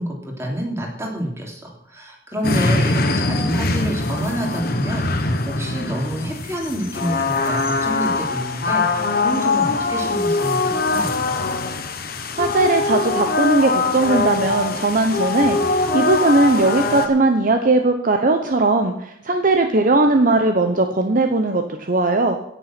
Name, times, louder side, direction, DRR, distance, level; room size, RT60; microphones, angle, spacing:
voice 1, 0.0-11.1, equal, 15° right, -1 dB, 3.1 m, -28 dB
sound 1, 2.4-17.1, left 3 dB, 55° left, 1.1 m, -22 dB
voice 2, 12.4-22.4, right 2 dB, 45° right, 5 dB, 0.9 m, -18 dB
16.5 x 7.0 x 6.0 m, 0.76 s
head